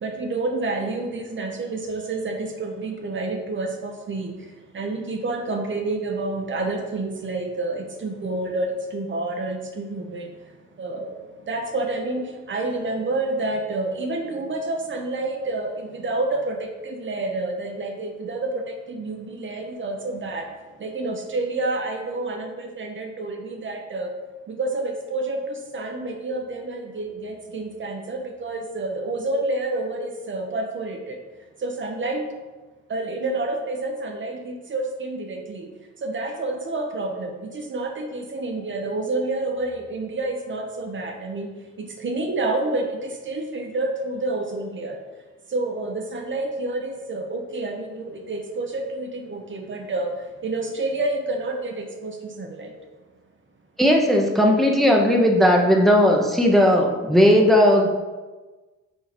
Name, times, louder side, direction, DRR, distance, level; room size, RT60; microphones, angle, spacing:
voice 1, 0.0-4.3 4.7-10.3 10.8-11.1 11.5-20.5 20.8-24.1 24.5-31.2 31.6-32.2 32.9-35.7 36.0-45.0 45.5-50.1 50.4-52.7, right 2 dB, 40° right, 3 dB, 0.8 m, -29 dB
voice 2, 53.8-57.9, equal, ahead, 0 dB, 0.9 m, -17 dB
5.1 x 3.9 x 5.1 m, 1.2 s
cardioid pair, 90°, 30 cm